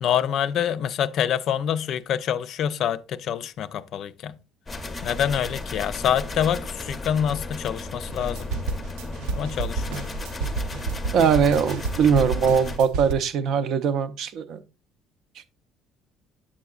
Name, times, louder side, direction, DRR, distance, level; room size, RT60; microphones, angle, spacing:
voice 1, 0.0-4.3 5.0-8.5 9.3-10.1, left 9 dB, 45° left, 0.3 m, -26 dB
sound 1, 4.7-12.8, left 2 dB, 15° left, 0.6 m, -34 dB
sound 2, 8.1-13.1, right 4 dB, 90° right, 0.7 m, -30 dB
voice 2, 11.1-14.6, right 6 dB, 50° right, 0.5 m, -21 dB
8.5 x 6.9 x 2.3 m
cardioid pair, 170°, 0 cm